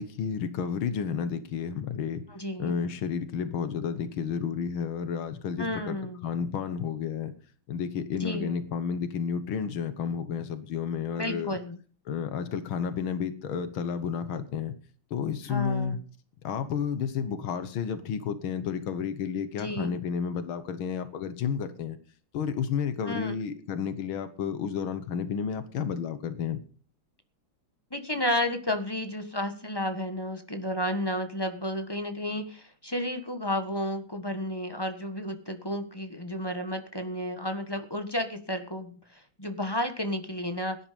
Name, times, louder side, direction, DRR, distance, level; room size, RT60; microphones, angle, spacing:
voice 1, 0.0-2.2 2.6-6.0 6.2-7.3 7.7-11.6 12.1-14.8 15.1-16.0 16.4-22.0 22.3-26.6, left 7 dB, 90° left, 11 dB, 2.0 m, -31 dB
voice 2, 2.3-2.8 5.6-6.2 8.2-8.5 11.1-11.8 15.5-16.0 19.6-19.9 23.0-23.3 27.9-40.8, left 1 dB, 15° left, 7 dB, 1.3 m, -32 dB
17.5 x 10.5 x 5.2 m, 0.40 s
omnidirectional pair, 2.2 m